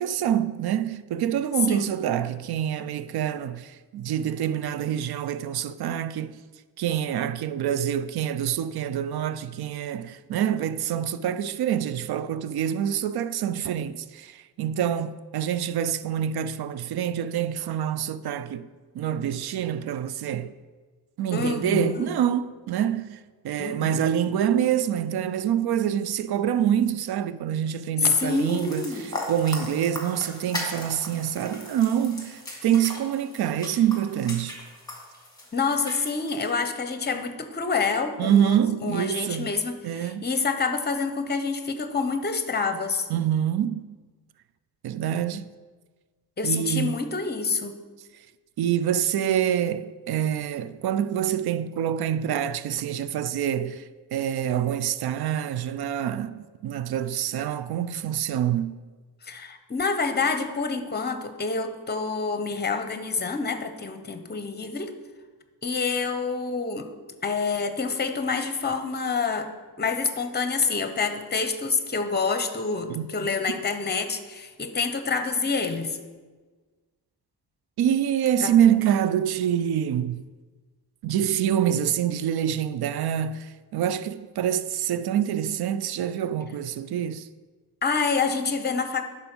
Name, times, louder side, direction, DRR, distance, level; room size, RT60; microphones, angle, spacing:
voice 1, 0.0-6.4 6.8-18.6 18.9-20.5 21.2-28.9 29.3-34.6 38.2-39.5 39.8-40.2 43.1-43.8 44.8-45.4 46.4-47.0 48.6-58.7 72.9-73.1 77.8-80.2 81.0-87.3, right 9 dB, 75° right, 0.5 m, -26 dB
voice 2, 21.3-22.1 23.6-24.0 28.0-29.0 35.5-43.1 46.4-47.8 59.2-64.9 65.6-66.9 67.2-69.5 69.8-76.0 78.4-78.5 87.8-89.0, left 4 dB, 25° left, 0.9 m, -27 dB
sound 1, 28.0-36.5, left 1 dB, 10° left, 2.0 m, -38 dB
10.5 x 4.5 x 6.1 m
cardioid pair, 115°, 38 cm